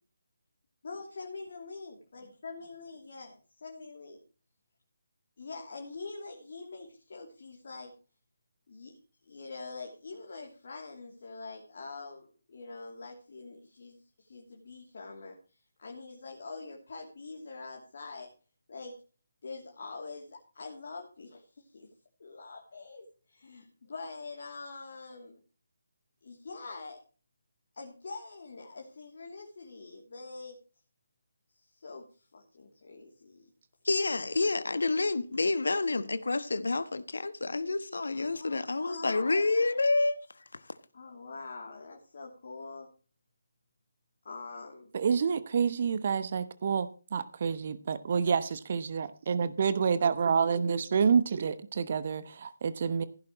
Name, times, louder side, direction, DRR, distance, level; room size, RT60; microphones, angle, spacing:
voice 1, 0.8-4.2 5.4-7.9 8.7-9.0 9.2-15.3 15.8-18.3 18.7-18.9 19.4-21.9 22.2-25.4 26.2-27.0 27.7-30.6 31.5-33.5 38.1-39.8 40.9-42.9 44.2-44.9, left 3 dB, 50° left, 3.0 m, -44 dB
voice 2, 33.8-40.2 40.5-40.6, left 3 dB, 65° left, 1.3 m, -28 dB
voice 3, 44.9-53.0, right 6 dB, 45° right, 1.0 m, -28 dB
16.0 x 10.5 x 3.1 m
figure-of-eight pair, 145°, 0 cm